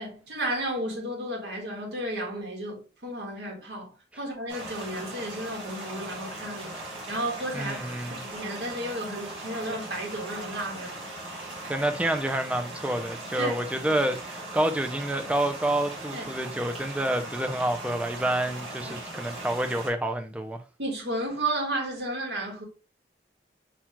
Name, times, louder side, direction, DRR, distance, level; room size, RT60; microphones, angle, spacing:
voice 1, 0.0-6.8 7.1-7.8 8.3-11.0 13.4-13.6 16.1-16.3 20.8-22.6, right 1 dB, 70° right, 1.6 m, -33 dB
sound 1, 4.5-19.9, right 2 dB, 30° right, 1.7 m, -39 dB
voice 2, 7.5-8.2 11.7-20.6, right 1 dB, 5° right, 0.4 m, -28 dB
5.7 x 2.4 x 2.9 m
head